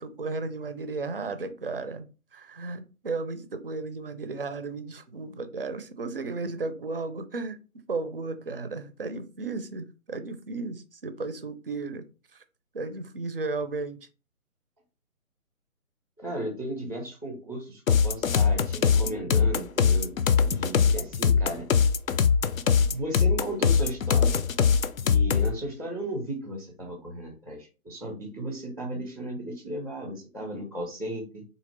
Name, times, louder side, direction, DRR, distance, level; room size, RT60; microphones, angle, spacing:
voice 1, 0.0-7.6 7.9-12.1 12.3-12.4 12.7-14.0, right 3 dB, 45° right, 11 dB, 0.4 m, -34 dB
voice 2, 16.2-20.1 20.4-21.7 22.8-24.4 25.0-31.4, right 1 dB, 15° left, 2 dB, 0.5 m, -35 dB
sound 1, 17.9-25.5, left 6 dB, 70° left, 0.5 m, -22 dB
3.7 x 2.8 x 3.1 m, 0.33 s
figure-of-eight pair, 145°, 43 cm